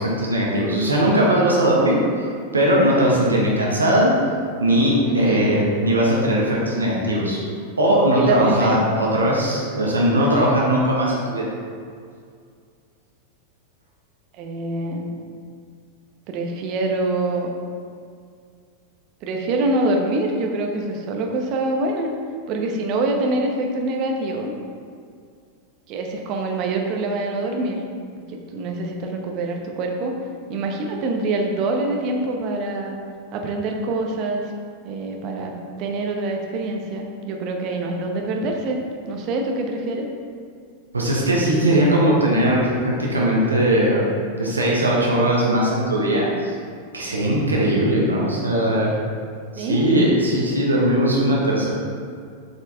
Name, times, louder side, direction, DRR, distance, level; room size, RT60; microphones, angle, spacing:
voice 1, 0.0-2.0 2.5-4.1 4.6-7.4 7.8-11.5 40.9-44.1 44.4-46.5 46.9-48.9 49.5-51.7, right 1 dB, 80° right, -4 dB, 1.5 m, -19 dB
voice 2, 5.0-5.5 8.1-8.8 14.3-15.2 16.3-17.5 19.2-22.1 22.5-24.5 25.9-27.8 28.3-30.1 30.5-33.0 33.3-34.5 34.8-38.8 39.1-40.1 49.6-49.9, right 2 dB, 40° right, 2 dB, 1.0 m, -25 dB
7.8 x 5.7 x 3.6 m, 2.2 s
figure-of-eight pair, 90°, 0 cm